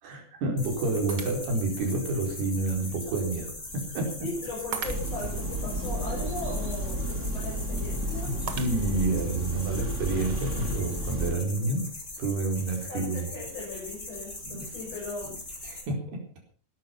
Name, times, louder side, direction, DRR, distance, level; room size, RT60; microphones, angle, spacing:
voice 1, 0.0-4.3 8.3-11.9 12.2-13.3 14.4-14.7 15.6-16.2, right 2 dB, 75° right, 3 dB, 6.4 m, -29 dB
sound 1, 0.6-15.8, left 2 dB, 20° left, 4.7 m, -41 dB
Shatter, 1.1-1.8 2.4-2.5 4.7-5.4 8.5-9.2, right 7 dB, 50° right, 1.6 m, -38 dB
voice 2, 4.2-8.4 12.9-15.4, left 2 dB, 40° left, -4 dB, 7.9 m, -38 dB
sound 2, 4.8-11.3, right 1 dB, 20° right, 2.6 m, -32 dB
19.5 x 11.5 x 5.8 m, 0.40 s
omnidirectional pair, 4.6 m